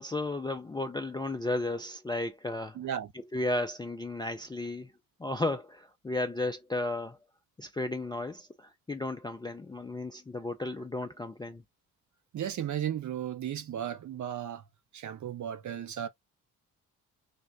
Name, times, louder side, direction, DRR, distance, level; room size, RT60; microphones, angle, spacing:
voice 1, 0.0-2.8 3.1-4.9 5.2-7.2 7.6-11.6, left 2 dB, 10° left, 0.4 m, -34 dB
voice 2, 2.7-3.1 12.3-14.6 14.9-16.1, right 10 dB, 40° right, 0.7 m, -35 dB
3.5 x 2.0 x 2.6 m
figure-of-eight pair, 40°, 46 cm